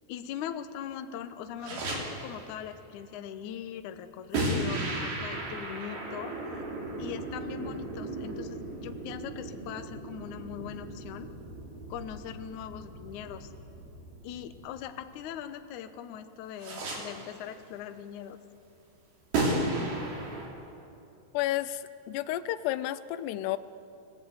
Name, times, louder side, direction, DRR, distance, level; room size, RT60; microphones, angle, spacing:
voice 1, 0.1-6.4 7.0-11.3 11.9-13.5 14.2-18.4, left 9 dB, 70° left, 8 dB, 1.9 m, -41 dB
sound 1, 1.6-2.5 4.3-15.3 16.6-17.4 19.3-20.5, right 2 dB, 65° right, 5.5 m, -35 dB
voice 2, 21.3-23.6, left 14 dB, 90° left, 14 dB, 2.8 m, -31 dB
26.5 x 20.5 x 8.1 m, 2.8 s
omnidirectional pair, 4.7 m